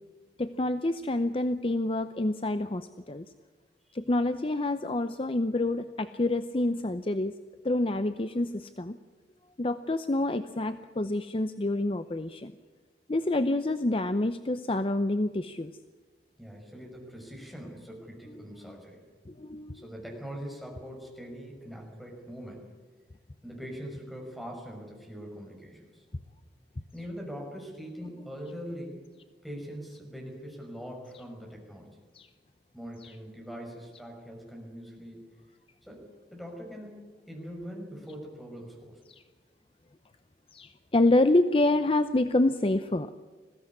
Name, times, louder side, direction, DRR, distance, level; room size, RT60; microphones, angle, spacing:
voice 1, 0.4-3.3 3.9-7.3 7.6-9.0 9.6-12.5 13.1-15.7 19.3-19.9 32.1-32.3 33.0-33.1 39.1-39.2 40.5-43.1, left 2 dB, 30° left, 10 dB, 0.7 m, -27 dB
voice 2, 16.4-19.0 19.7-22.6 23.4-26.0 26.9-29.0 29.4-32.0 32.7-35.2 35.8-36.0 36.3-39.0, equal, ahead, 0 dB, 5.6 m, -42 dB
21.0 x 16.0 x 9.7 m, 1.4 s
head